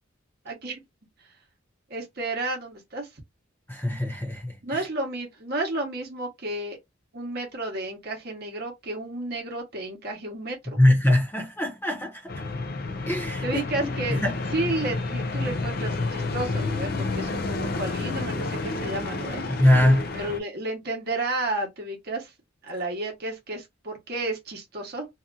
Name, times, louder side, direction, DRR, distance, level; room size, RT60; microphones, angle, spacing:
voice 1, 0.4-0.8 1.9-3.1 4.6-6.8 7.1-10.8 13.4-14.2 14.5-19.4 20.1-22.3 22.6-25.1, right 2 dB, 55° right, 1.0 m, -32 dB
voice 2, 3.7-4.8 10.8-12.3 13.1-13.6 14.1-14.3 19.5-20.1, left 1 dB, 10° left, 0.9 m, -22 dB
sound 1, 12.3-20.4, left 3 dB, 50° left, 0.4 m, -30 dB
2.8 x 2.4 x 2.4 m
head